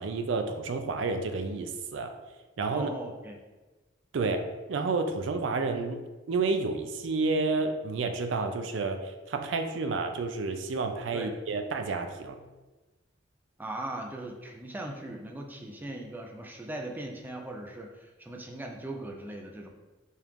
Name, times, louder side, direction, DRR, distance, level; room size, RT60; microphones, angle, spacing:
voice 1, 0.0-2.1 2.6-2.9 4.1-4.4 4.7-12.4, right 3 dB, 75° right, 6 dB, 0.4 m, -30 dB
voice 2, 2.7-3.4 11.1-11.3 13.6-19.7, right 1 dB, 10° right, 1 dB, 0.4 m, -39 dB
4.4 x 2.4 x 3.5 m, 1.2 s
head